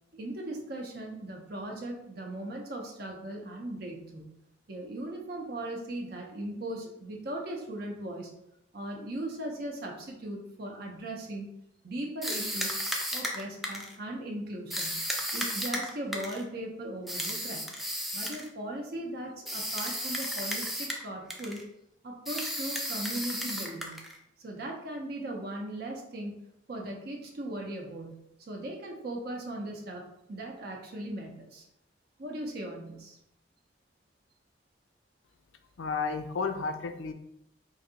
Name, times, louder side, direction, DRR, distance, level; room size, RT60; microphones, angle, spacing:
voice 1, 0.1-4.2 4.7-8.3 8.7-11.5 11.8-12.8 13.1-15.0 15.3-17.7 18.1-21.6 22.0-23.9 24.4-26.4 26.7-31.6 32.2-33.2, right 1 dB, 55° right, 1 dB, 0.6 m, -38 dB
sound 1, 12.2-14.0 14.7-16.4 17.1-18.5 19.5-21.1 21.3-21.6 22.3-24.2, equal, ahead, 0.4 m, -34 dB
voice 2, 35.8-37.1, left 5 dB, 90° left, 7 dB, 0.4 m, -32 dB
3.2 x 2.7 x 3.8 m, 0.80 s
head